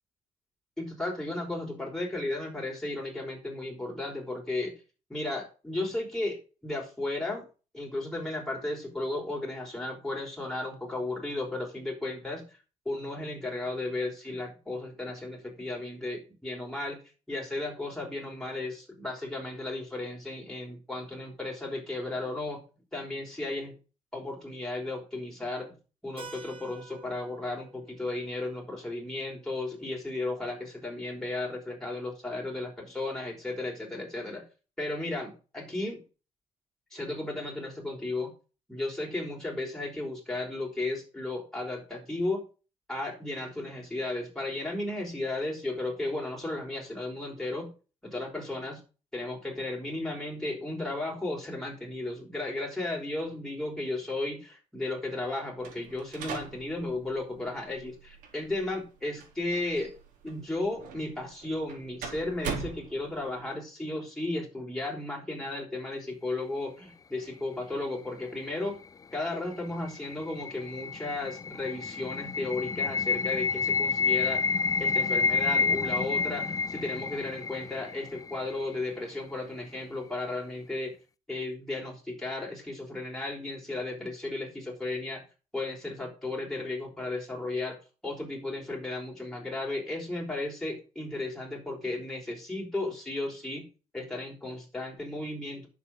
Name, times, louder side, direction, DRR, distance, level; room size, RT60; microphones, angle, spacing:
voice 1, 0.8-4.7 5.1-7.5 7.7-12.4 12.8-17.0 17.3-22.6 22.9-23.7 24.1-25.7 26.0-34.4 34.8-36.0 36.9-38.3 38.7-42.4 42.9-47.7 48.0-48.8 49.1-59.9 60.2-68.8 69.1-74.5 74.8-80.9 81.3-85.2 85.5-87.8 88.0-93.6 93.9-95.7, left 2 dB, 5° left, -2 dB, 5.1 m, -34 dB
Keyboard (musical), 26.2-30.6, right 4 dB, 40° right, 2.7 m, -51 dB
sound 1, 55.6-63.4, right 5 dB, 80° right, 3.7 m, -42 dB
sound 2, 69.6-78.6, left 5 dB, 25° left, 0.5 m, -29 dB
10.0 x 7.3 x 6.5 m, 0.34 s
cardioid pair, 100°, 14 cm